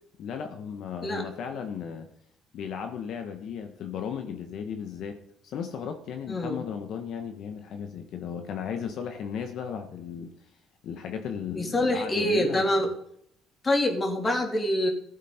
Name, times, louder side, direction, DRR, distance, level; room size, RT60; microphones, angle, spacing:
voice 1, 0.2-2.1 2.5-10.4 10.8-12.9, left 7 dB, 65° left, 6 dB, 1.3 m, -35 dB
voice 2, 6.3-6.6 11.5-12.9 13.6-14.9, left 1 dB, 30° left, 3 dB, 3.2 m, -25 dB
15.0 x 7.4 x 5.7 m, 0.72 s
supercardioid pair, 85°, 0 cm